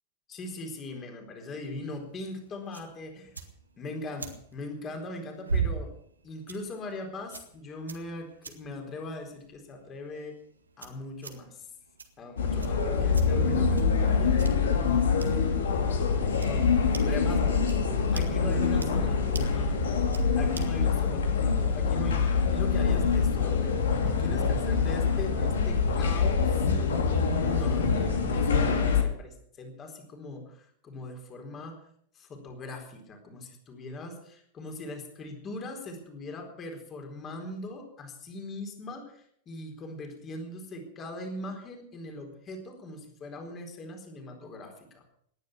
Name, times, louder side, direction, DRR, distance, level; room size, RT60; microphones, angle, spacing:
voice 1, 0.3-3.4 3.8-5.9 6.2-10.4 10.8-11.7 12.2-15.5 16.3-16.7 17.0-17.7 18.1-19.8 20.3-26.7 27.4-31.8 32.1-45.0, left 2 dB, 25° left, 3 dB, 4.2 m, -40 dB
sound 1, 1.7-20.9, right 5 dB, 75° right, 1.8 m, -42 dB
sound 2, 12.4-29.0, left 5 dB, 65° left, 2.5 m, -25 dB
19.0 x 11.0 x 6.2 m, 0.67 s
figure-of-eight pair, 90°, 0 cm